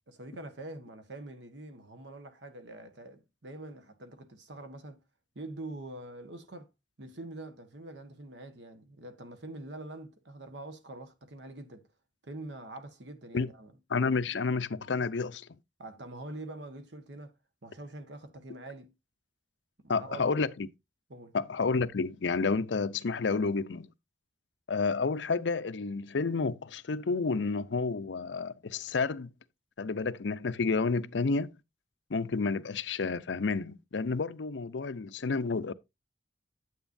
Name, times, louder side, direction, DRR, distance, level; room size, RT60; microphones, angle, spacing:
voice 1, 0.1-5.0 5.3-6.7 7.0-11.9 12.2-13.7 15.8-17.3 17.6-18.9 19.8-20.3 21.1-21.3, right 2 dB, 75° right, 1.4 m, -45 dB
voice 2, 13.9-15.5 19.9-20.7 21.3-23.9 24.7-29.3 29.8-31.5 32.1-35.7, left 4 dB, 90° left, 0.6 m, -30 dB
9.2 x 8.0 x 2.6 m
head